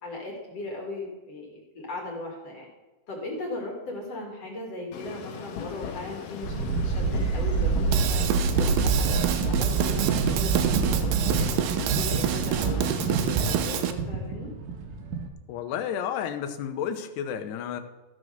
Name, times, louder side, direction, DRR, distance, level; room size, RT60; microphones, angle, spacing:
voice 1, 0.0-2.7 3.1-8.2 8.6-14.5, left 2 dB, 45° left, 0 dB, 2.6 m, -38 dB
sound 1, 4.9-13.9, left 6 dB, 65° left, 2.6 m, -39 dB
sound 2, 6.4-15.3, right 4 dB, 65° right, 2.3 m, -27 dB
Drum kit / Drum, 7.9-13.9, right 10 dB, 85° right, 2.8 m, -27 dB
voice 2, 15.5-17.8, left 8 dB, 80° left, 7 dB, 2.9 m, -31 dB
14.0 x 6.3 x 6.5 m, 1.1 s
omnidirectional pair, 4.7 m